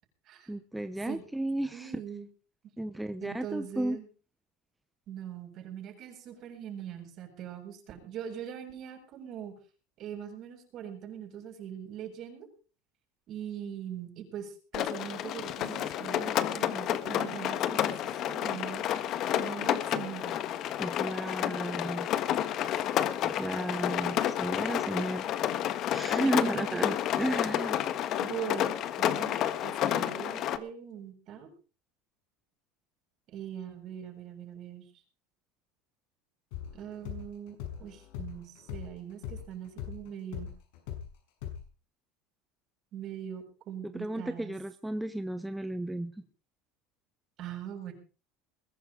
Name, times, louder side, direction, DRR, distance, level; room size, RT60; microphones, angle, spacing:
voice 1, 0.5-2.0 2.8-4.0 20.8-22.3 23.2-25.2 25.9-27.8 43.9-46.2, right 1 dB, 5° right, 9 dB, 0.9 m, -33 dB
voice 2, 1.7-2.3 3.2-4.1 5.1-9.5 10.0-12.5 13.3-18.8 19.3-20.4 22.4-22.5 26.2-26.9 28.2-31.5 33.3-34.9 36.7-40.5 42.9-44.5 47.4-47.9, right 9 dB, 45° right, 3 dB, 7.4 m, -41 dB
Rain, 14.7-30.6, left 11 dB, 45° left, 1.4 m, -30 dB
sound 1, 36.5-41.1 41.4-41.6, left 10 dB, 75° left, 5.8 m, -40 dB
21.5 x 11.0 x 5.1 m, 0.37 s
supercardioid pair, 135°, 0 cm